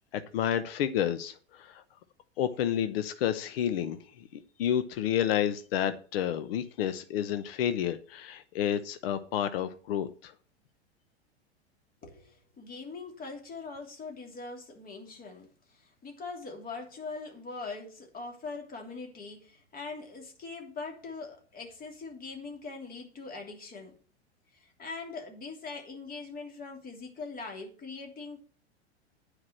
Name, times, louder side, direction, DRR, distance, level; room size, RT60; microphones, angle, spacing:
voice 1, 0.1-1.8 2.4-10.3, left 10 dB, 55° left, 0.9 m, -30 dB
voice 2, 12.0-24.0 24.5-28.4, left 4 dB, 25° left, 3.0 m, -42 dB
9.6 x 4.9 x 7.4 m
figure-of-eight pair, 95°, 34 cm